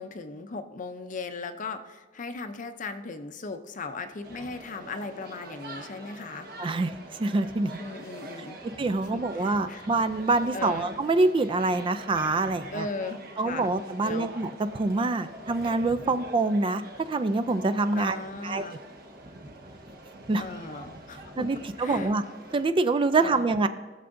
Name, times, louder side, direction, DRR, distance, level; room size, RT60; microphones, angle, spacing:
voice 1, 0.0-6.5 7.8-8.6 9.1-9.9 10.5-10.9 12.7-14.3 18.0-18.8 20.4-21.5 21.8-22.1 23.2-23.5, left 3 dB, 45° left, 9 dB, 0.6 m, -37 dB
sound 1, 4.2-22.6, right 1 dB, 60° right, 1.3 m, -45 dB
voice 2, 6.6-7.8 8.8-12.9 13.4-16.8 17.1-18.2 18.4-18.7 20.3-20.4 21.4-22.2 22.5-23.7, right 3 dB, 30° right, 11 dB, 0.3 m, -25 dB
19.0 x 6.8 x 2.6 m, 1.3 s
head